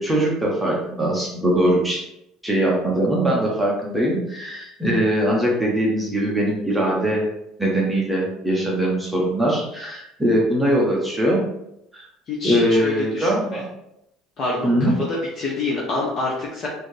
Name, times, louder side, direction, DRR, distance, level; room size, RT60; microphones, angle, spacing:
voice 1, 0.0-2.0 2.4-7.2 7.6-11.4 11.9-12.1 12.4-13.7 14.6-14.9, right 1 dB, 5° right, -3 dB, 0.7 m, -21 dB
voice 2, 12.3-13.6 14.4-14.9 15.4-16.7, left 3 dB, 30° left, -5 dB, 0.8 m, -26 dB
4.1 x 2.6 x 3.2 m, 0.82 s
cardioid pair, 160°, 0 cm